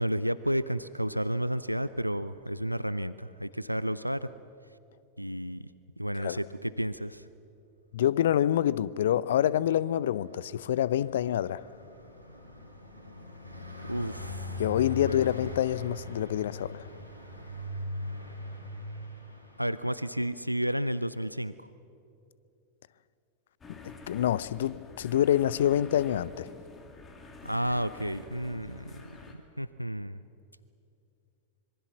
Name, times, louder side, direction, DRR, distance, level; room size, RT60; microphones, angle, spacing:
voice 1, 0.0-4.3 5.2-5.6 6.0-7.2 13.8-14.6 15.0-15.2 19.6-21.5 27.4-29.2 29.6-30.2, equal, 90° right, 0.5 m, -31 dB
voice 2, 7.9-11.6 14.6-16.9 23.7-26.5, left 11 dB, 60° left, 0.6 m, -27 dB
Car passing by, 9.7-20.4, left 1 dB, 85° left, 4.0 m, -42 dB
sound 1, 23.6-29.3, left 3 dB, 20° left, 2.8 m, -48 dB
26.0 x 23.5 x 7.3 m
figure-of-eight pair, 90°, 0 cm